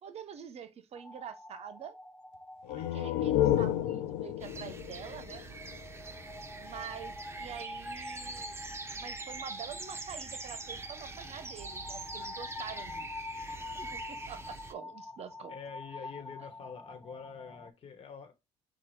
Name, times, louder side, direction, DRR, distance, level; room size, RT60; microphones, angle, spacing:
voice 1, 0.0-1.9 2.7-5.4 6.5-8.6 8.9-13.3 13.7-15.6, right 8 dB, 50° right, 0.8 m, -46 dB
sound 1, 1.0-17.7, left 2 dB, 5° left, 0.4 m, -46 dB
sound 2, 2.6-6.2, left 12 dB, 85° left, 0.5 m, -31 dB
sound 3, 4.4-14.7, right 3 dB, 20° right, 0.8 m, -44 dB
voice 2, 15.5-18.3, left 6 dB, 45° left, 1.3 m, -46 dB
5.8 x 2.3 x 3.2 m
cardioid pair, 90°, 13 cm